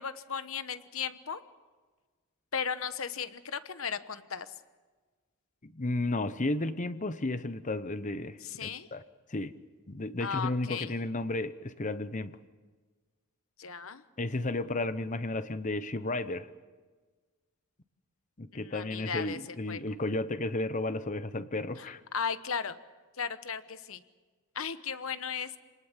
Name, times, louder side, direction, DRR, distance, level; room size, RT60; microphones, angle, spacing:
voice 1, 0.0-1.4 2.5-4.5 8.4-8.9 10.2-10.9 13.6-14.0 18.5-20.0 21.8-22.8 23.2-24.0 24.5-25.6, left 6 dB, 65° left, 12 dB, 1.1 m, -36 dB
voice 2, 5.6-9.0 9.3-9.5 9.9-12.4 14.2-16.5 18.4-22.0, left 2 dB, 35° left, 13 dB, 0.9 m, -33 dB
27.0 x 19.5 x 7.4 m, 1.4 s
head